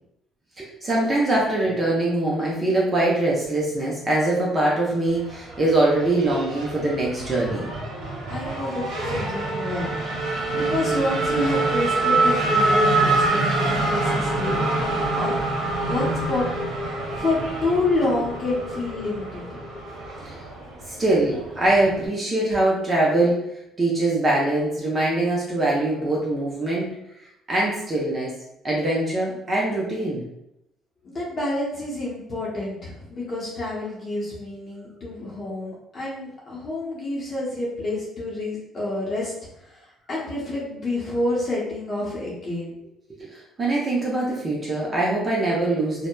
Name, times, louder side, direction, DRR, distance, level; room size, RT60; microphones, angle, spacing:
voice 1, 0.6-7.7 20.2-20.4 20.9-23.5 23.8-27.0 27.5-28.3 28.6-30.2 43.2-46.1, right 2 dB, 30° right, -4 dB, 0.6 m, -23 dB
Race car auto racing / Accelerating revving vroom, 5.1-22.1, right 2 dB, 80° right, 0.8 m, -26 dB
voice 2, 8.3-9.9 10.5-15.3 15.9-19.6 31.0-39.3 39.6-42.8, left 2 dB, 40° left, -6 dB, 0.7 m, -28 dB
2.7 x 2.1 x 2.2 m, 0.83 s
cardioid pair, 100°, 0 cm